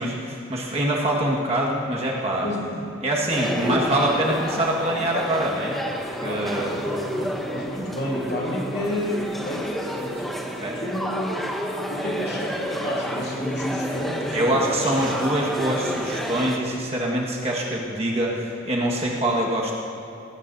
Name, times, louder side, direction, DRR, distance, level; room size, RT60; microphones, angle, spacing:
voice 1, 0.0-2.5 3.0-6.7 10.6-10.8 14.3-19.7, right 1 dB, 30° right, -3 dB, 1.6 m, -24 dB
voice 2, 2.4-2.9 3.4-3.8 6.2-10.3 10.8-11.5 11.9-15.1, left 1 dB, 50° left, -5 dB, 2.8 m, -30 dB
sound 1, 3.3-16.6, equal, ahead, 0.8 m, -30 dB
18.5 x 16.5 x 2.7 m, 2.8 s
head